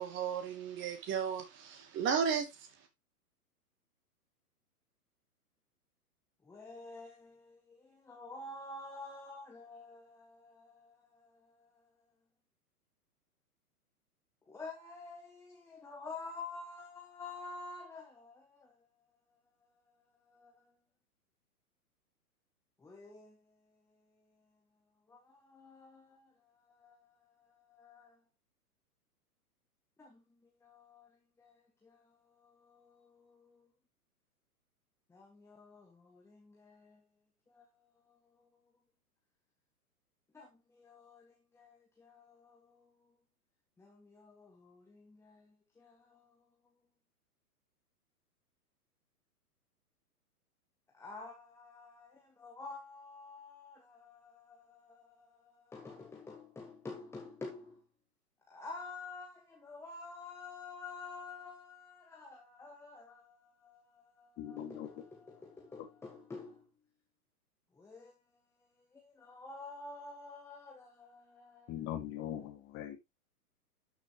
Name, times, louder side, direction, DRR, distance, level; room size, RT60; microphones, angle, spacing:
voice 1, 0.0-2.9, right 7 dB, 25° right, 2.4 m, -34 dB
voice 2, 6.4-12.0 14.5-20.8 22.8-24.6 25.1-28.2 30.0-33.7 35.1-37.0 37.5-38.6 40.3-43.2 43.8-46.7 50.9-57.8 58.5-66.7 67.7-71.8, left 3 dB, 5° left, 1.3 m, -50 dB
voice 3, 64.4-64.9 71.7-73.0, left 11 dB, 25° left, 2.1 m, -41 dB
12.5 x 6.4 x 3.0 m
figure-of-eight pair, 115°, 46 cm